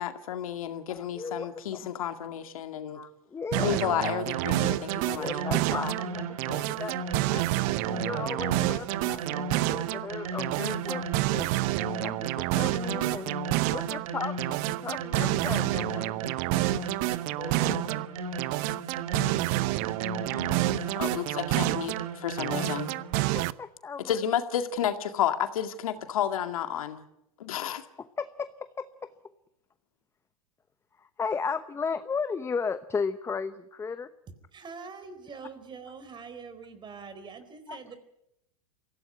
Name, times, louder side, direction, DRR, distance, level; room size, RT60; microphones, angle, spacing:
voice 1, 0.0-3.0 3.6-5.3 21.0-22.9 24.0-27.0 27.4-27.8, left 10 dB, 75° left, 8 dB, 2.1 m, -31 dB
voice 2, 0.9-1.9 2.9-3.8 5.2-7.0 7.3-11.5 12.0-13.3 13.7-16.2 17.4-17.8 23.2-24.2 28.0-29.1 31.0-34.1 37.7-37.8, left 5 dB, 15° left, 12 dB, 0.9 m, -35 dB
sound 1, 3.5-6.1 6.4-10.1 10.4-14.1 14.4-18.1 18.4-22.1 22.4-23.5, right 19 dB, 50° right, 0.8 m, -29 dB
sound 2, 3.5-23.2, right 4 dB, 70° right, 2.6 m, -36 dB
voice 3, 34.5-38.0, right 5 dB, 25° right, 12 dB, 4.2 m, -44 dB
24.0 x 16.5 x 9.4 m, 0.84 s
hypercardioid pair, 105°, 18 cm